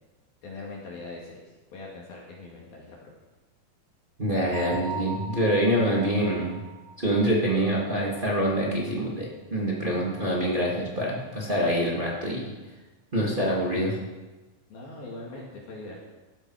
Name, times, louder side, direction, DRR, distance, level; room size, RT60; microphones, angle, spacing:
voice 1, 0.4-3.0 14.7-16.0, left 2 dB, 55° left, -3 dB, 3.6 m, -41 dB
voice 2, 4.2-6.6 7.0-12.5 13.1-14.0, equal, 30° right, -5 dB, 1.0 m, -25 dB
Bell, 4.5-8.2, right 3 dB, 55° right, 4.1 m, -40 dB
16.0 x 12.0 x 4.9 m, 1.2 s
omnidirectional pair, 5.4 m